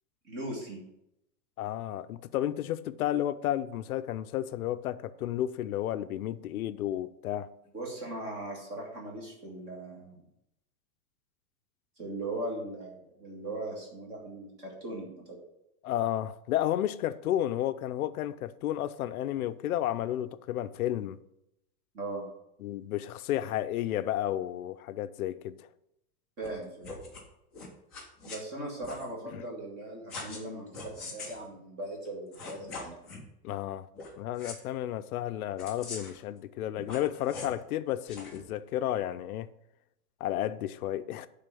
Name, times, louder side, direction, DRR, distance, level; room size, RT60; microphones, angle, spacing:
voice 1, 0.2-0.8 7.7-10.2 12.0-15.4 21.9-22.3 26.4-26.9 28.2-33.1, right 2 dB, 20° right, 1.9 m, -39 dB
voice 2, 1.6-7.5 15.8-21.2 22.6-25.6 33.4-33.9 34.2-39.5 40.2-41.3, left 12 dB, 70° left, 0.6 m, -32 dB
sound 1, 26.4-26.5 26.8-27.2 27.5-28.4 28.8-29.1 30.1-30.4 30.7-31.4 32.0-32.1 32.3-33.2 33.9-34.1 34.4-34.5 35.6-36.2 36.8-37.6 38.1-38.4, left 3 dB, ahead, 0.5 m, -42 dB
9.0 x 3.9 x 6.8 m
supercardioid pair, 180°, 45 cm